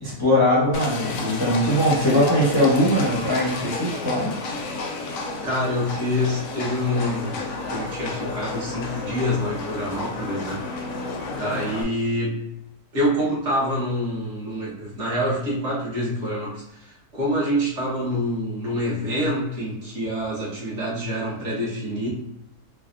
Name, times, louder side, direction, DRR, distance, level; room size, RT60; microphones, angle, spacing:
voice 1, 0.0-4.3, left 1 dB, 20° left, -7 dB, 0.6 m, -20 dB
Livestock farm animals working animals, 0.7-11.8, left 3 dB, 70° left, 0.9 m, -31 dB
voice 2, 5.4-7.4 7.7-10.6 11.4-12.4 12.9-22.1, equal, 50° right, -6 dB, 1.4 m, -26 dB
3.3 x 2.3 x 2.5 m, 0.80 s
omnidirectional pair, 1.6 m